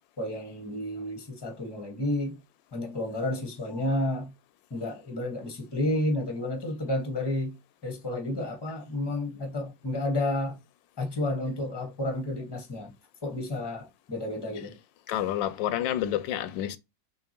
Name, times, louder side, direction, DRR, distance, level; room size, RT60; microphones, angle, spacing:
voice 1, 0.2-2.4 2.7-4.3 4.7-7.5 7.8-10.6 11.0-12.9 13.2-14.7, left 1 dB, 15° left, 1.1 m, -31 dB
voice 2, 15.1-16.8, left 12 dB, 80° left, 1.3 m, -29 dB
6.4 x 2.9 x 2.9 m
omnidirectional pair, 2.0 m